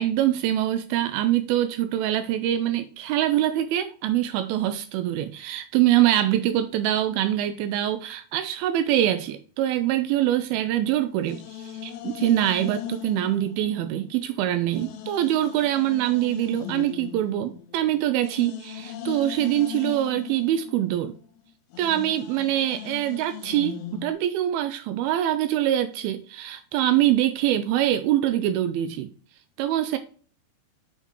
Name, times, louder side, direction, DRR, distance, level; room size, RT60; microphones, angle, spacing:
voice 1, 0.0-21.1 21.8-29.1 29.6-30.0, right 12 dB, 85° right, 2.4 m, -24 dB
sound 1, 10.5-14.3 14.7-24.1, left 11 dB, 85° left, 2.5 m, -39 dB
7.2 x 5.4 x 3.0 m
omnidirectional pair, 4.3 m